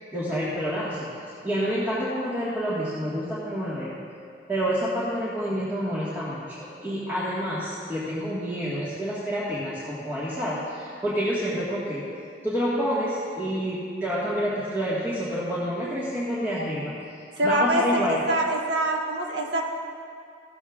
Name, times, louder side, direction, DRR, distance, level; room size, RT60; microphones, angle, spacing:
voice 1, 0.1-4.0 4.5-12.1 12.4-18.2, equal, 15° right, -10 dB, 1.7 m, -28 dB
voice 2, 17.4-19.6, right 1 dB, 75° right, -1 dB, 1.5 m, -24 dB
16.0 x 14.0 x 2.5 m, 2.4 s
head